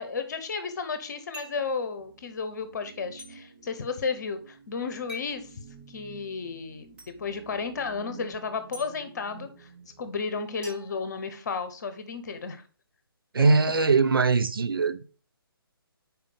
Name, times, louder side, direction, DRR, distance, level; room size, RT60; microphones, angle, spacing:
voice 1, 0.0-5.5 5.9-6.9 7.2-9.7 10.0-12.6 13.4-13.5, left 5 dB, 45° left, 1.0 m, -33 dB
sound 1, 1.3-1.7 3.2-3.3 5.1-5.4 7.0-7.1 8.7-8.9 10.6-11.7, left 1 dB, 10° right, 1.4 m, -44 dB
sound 2, 2.0-10.1, right 6 dB, 35° right, 0.8 m, -51 dB
voice 2, 13.3-15.0, right 4 dB, 65° right, 0.6 m, -21 dB
5.1 x 4.7 x 5.0 m
figure-of-eight pair, 140°, 13 cm